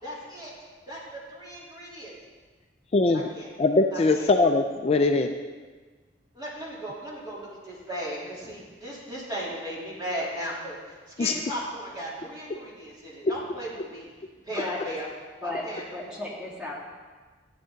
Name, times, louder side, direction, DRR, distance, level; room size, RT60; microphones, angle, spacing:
voice 1, 0.0-0.5 0.9-2.1 3.1-3.5 3.9-4.3 6.3-14.1 14.4-15.1 15.4-16.2, equal, 25° right, -7 dB, 3.4 m, -37 dB
voice 2, 2.9-3.3 3.6-5.3 11.2-11.4 13.2-13.3, left 3 dB, 35° left, 5 dB, 0.4 m, -21 dB
voice 3, 15.4-16.7, left 2 dB, 5° right, -6 dB, 2.5 m, -34 dB
13.5 x 9.3 x 4.0 m, 1.4 s
head